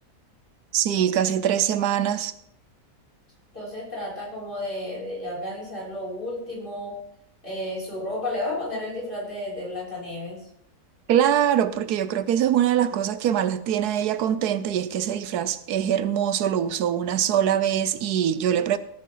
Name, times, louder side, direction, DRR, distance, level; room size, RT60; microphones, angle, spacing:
voice 1, 0.7-2.3 11.1-18.8, right 10 dB, 90° right, 1.3 m, -23 dB
voice 2, 3.5-7.0 7.4-10.5, left 1 dB, 35° left, 6.6 m, -32 dB
18.0 x 10.5 x 3.9 m
omnidirectional pair, 1.6 m